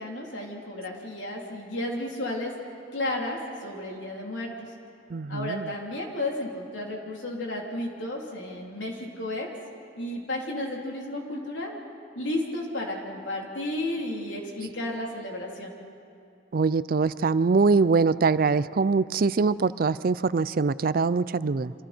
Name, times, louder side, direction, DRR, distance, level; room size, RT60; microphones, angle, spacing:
voice 1, 0.0-2.5 2.9-4.7 5.3-9.5 10.0-11.7 12.2-15.7, left 1 dB, 85° left, -1 dB, 3.6 m, -33 dB
voice 2, 5.1-5.7 16.5-21.7, right 4 dB, 50° right, 17 dB, 0.4 m, -23 dB
28.0 x 26.0 x 4.5 m, 2.6 s
head